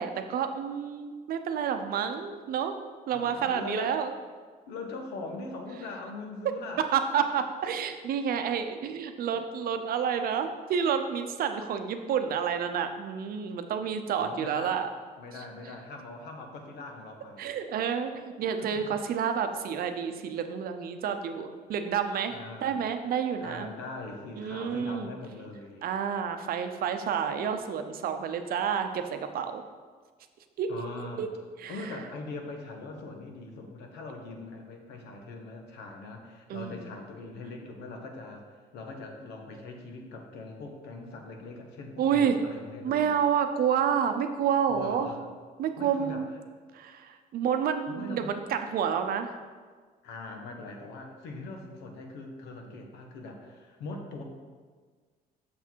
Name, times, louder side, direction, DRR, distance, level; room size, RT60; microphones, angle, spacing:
voice 1, 0.0-2.7 3.1-4.1 6.9-14.9 17.4-23.7 24.4-25.1 25.8-29.6 30.6-30.7 31.0-31.3 31.6-31.8 36.5-36.9 42.0-42.3 42.8-45.1 45.6-46.3 46.7-49.3, right 7 dB, 60° right, 7 dB, 0.7 m, -29 dB
voice 2, 3.1-4.0 4.7-6.9 9.3-9.4 14.2-14.8 15.2-17.4 18.6-19.0 21.0-21.2 22.3-22.9 23.4-25.8 30.7-31.3 31.7-38.4 38.7-43.2 44.7-45.2 45.8-46.2 47.9-48.3 50.0-54.2, left 3 dB, 85° left, 3 dB, 1.2 m, -41 dB
6.5 x 5.9 x 4.5 m, 1.5 s
cardioid pair, 110°, 17 cm